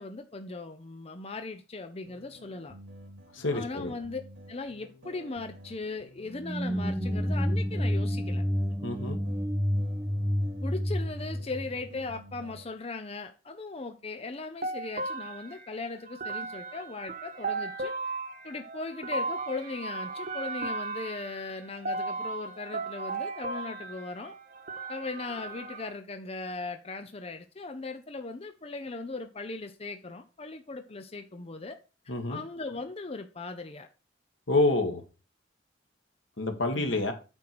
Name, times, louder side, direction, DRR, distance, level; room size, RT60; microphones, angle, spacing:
voice 1, 0.0-2.7 3.5-4.2 4.5-8.4 10.6-17.9 18.4-24.3 24.9-31.8 32.0-33.9 36.7-37.1, left 3 dB, 30° left, 0.7 m, -38 dB
sound 1, 2.0-12.7, equal, 85° right, 3.0 m, -50 dB
voice 2, 3.3-3.9 8.8-9.2 32.1-32.4 34.5-35.0 36.4-37.1, left 2 dB, 90° left, 1.8 m, -27 dB
sound 2, 6.3-12.4, equal, 10° right, 0.6 m, -29 dB
sound 3, 14.6-25.9, right 3 dB, 45° right, 1.1 m, -36 dB
8.7 x 4.6 x 6.1 m
head